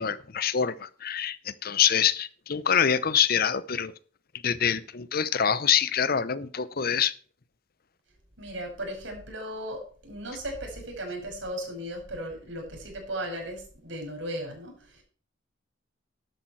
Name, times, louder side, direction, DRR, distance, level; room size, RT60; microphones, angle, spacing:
voice 1, 0.0-3.9 4.4-7.1, left 8 dB, 50° left, 17 dB, 0.7 m, -25 dB
voice 2, 8.4-15.0, right 1 dB, 75° right, 1 dB, 6.0 m, -36 dB
12.0 x 8.4 x 4.6 m, 0.42 s
head